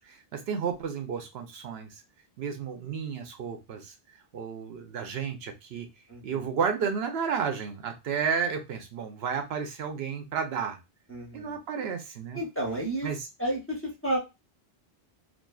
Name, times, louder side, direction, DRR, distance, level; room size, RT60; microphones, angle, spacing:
voice 1, 0.0-1.9 2.4-3.9 4.3-5.9 6.2-10.8 11.3-12.4 13.0-13.2, right 6 dB, 75° right, 6 dB, 0.8 m, -32 dB
voice 2, 6.1-6.5 11.1-11.6 12.3-13.1 13.4-14.2, right 1 dB, 15° left, -3 dB, 0.6 m, -31 dB
2.5 x 2.3 x 2.3 m, 0.25 s
omnidirectional pair, 1.1 m